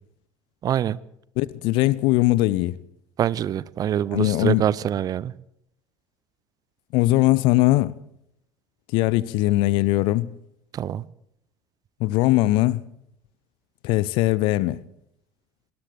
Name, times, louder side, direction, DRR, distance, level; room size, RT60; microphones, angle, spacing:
voice 1, 0.6-1.0 3.2-5.3 10.7-11.0, right 10 dB, 40° right, 0.7 m, -24 dB
voice 2, 1.4-2.8 4.1-4.7 6.9-7.9 8.9-10.3 12.0-12.9 13.8-14.8, left 18 dB, 55° left, 0.9 m, -20 dB
19.5 x 17.5 x 7.8 m
figure-of-eight pair, 65°, 10 cm